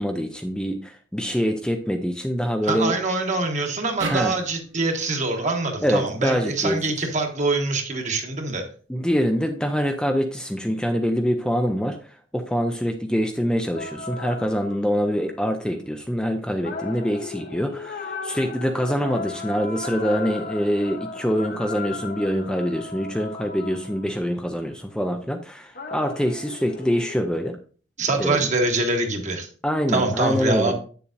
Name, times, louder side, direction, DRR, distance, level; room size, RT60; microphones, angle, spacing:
voice 1, 0.0-3.0 4.1-4.3 5.8-6.8 8.9-12.0 12.3-27.6 28.2-28.4 29.6-30.7, equal, 5° left, 4 dB, 0.5 m, -25 dB
voice 2, 2.6-8.6 28.0-29.5 29.9-30.7, right 3 dB, 40° right, 3 dB, 1.3 m, -24 dB
sound 1, 4.0-7.2, right 3 dB, 85° right, 1.2 m, -37 dB
sound 2, 13.7-15.4 16.6-24.5 25.7-27.3, left 4 dB, 50° left, 0.9 m, -36 dB
8.3 x 6.9 x 2.5 m, 0.42 s
head